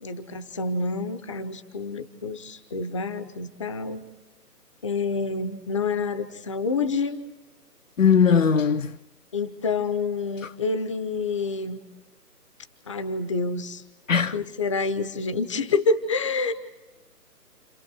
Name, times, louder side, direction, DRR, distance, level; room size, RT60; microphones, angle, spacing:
voice 1, 0.0-4.1 4.8-7.2 9.3-11.8 12.9-13.8 14.3-16.5, left 4 dB, 20° left, 0.7 m, -28 dB
voice 2, 8.0-8.9 14.1-14.4, left 6 dB, 55° left, 0.7 m, -19 dB
30.0 x 28.5 x 4.8 m
figure-of-eight pair, 145°, 48 cm